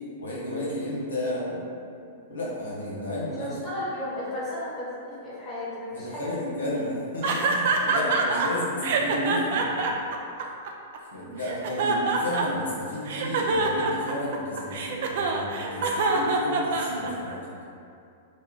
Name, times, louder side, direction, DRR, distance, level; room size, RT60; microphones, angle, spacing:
voice 1, 0.2-1.6 2.3-3.6 5.9-10.0 11.1-17.4, left 1 dB, 85° left, -7 dB, 0.6 m, -32 dB
voice 2, 3.4-6.5, left 1 dB, 30° left, -8 dB, 1.2 m, -34 dB
sound 1, 7.2-8.5 8.8-11.0 11.4-12.7 13.1-17.3, right 4 dB, 60° right, 0.3 m, -25 dB
3.0 x 2.2 x 3.5 m, 2.5 s
hypercardioid pair, 105°, 0 cm